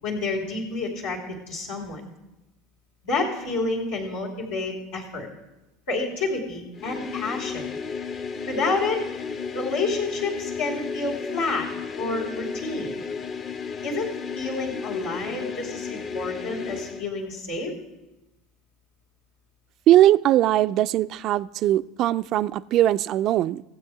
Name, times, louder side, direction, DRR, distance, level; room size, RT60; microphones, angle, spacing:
voice 1, 0.0-2.0 3.0-5.3 5.9-7.6 8.5-9.0 9.5-11.7 12.0-12.9 13.8-17.7, left 3 dB, 85° left, -4 dB, 2.8 m, -29 dB
sound 1, 6.7-17.1, left 5 dB, 40° left, 0.8 m, -33 dB
voice 2, 19.9-23.6, right 13 dB, 50° right, 16 dB, 0.3 m, -20 dB
16.0 x 7.8 x 4.8 m, 0.98 s
hypercardioid pair, 80°, 0 cm